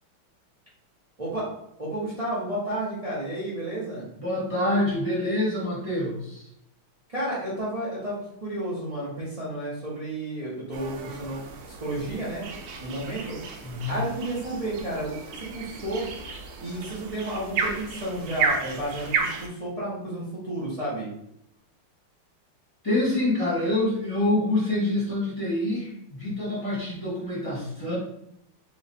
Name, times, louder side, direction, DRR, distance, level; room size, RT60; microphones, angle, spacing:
voice 1, 1.8-4.1 7.1-12.4 12.8-13.4 13.9-16.1 16.6-21.1, right 1 dB, 55° right, -8 dB, 0.4 m, -32 dB
voice 2, 4.2-6.5 13.6-14.0 22.8-28.0, left 1 dB, 20° left, -7 dB, 1.2 m, -26 dB
sound 1, 10.7-19.5, right 5 dB, 75° right, 1.5 m, -33 dB
3.2 x 3.1 x 4.1 m, 0.76 s
omnidirectional pair, 2.4 m